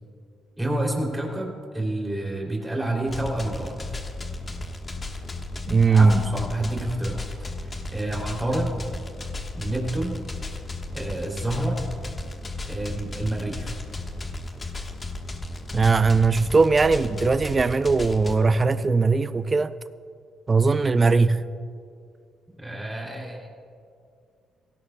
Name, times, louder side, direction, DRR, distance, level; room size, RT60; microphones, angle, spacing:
voice 1, 0.6-3.8 5.9-7.3 7.6-8.8 9.5-10.2 10.9-11.8 12.6-13.8 22.6-23.5, right 1 dB, 5° right, 2.8 m, -29 dB
sound 1, 3.1-18.4, left 2 dB, 30° left, 1.2 m, -34 dB
voice 2, 5.7-6.2 15.7-19.7 20.5-21.5, right 4 dB, 30° right, 0.4 m, -19 dB
17.0 x 16.0 x 2.2 m
cardioid pair, 90°, 0 cm